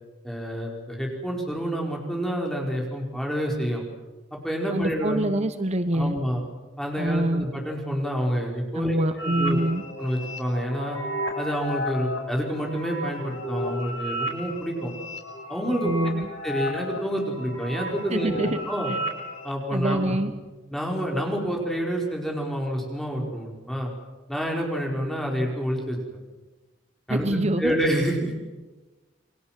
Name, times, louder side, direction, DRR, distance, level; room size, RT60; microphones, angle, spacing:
voice 1, 0.2-3.8 4.3-5.3 5.9-6.4 6.8-9.6 10.0-11.0 11.3-14.9 15.5-15.9 16.2-18.9 19.4-20.1 20.7-23.9 24.3-26.0 27.1-28.3, equal, ahead, 0 dB, 5.0 m, -28 dB
voice 2, 4.7-6.1 7.0-7.5 8.7-9.8 15.8-16.3 18.1-18.6 18.9-19.0 19.7-20.3 27.1-27.8, right 1 dB, 35° right, 10 dB, 1.1 m, -25 dB
sound 1, 9.2-19.5, equal, 75° left, 5.7 m, -33 dB
29.5 x 22.5 x 7.6 m, 1.2 s
head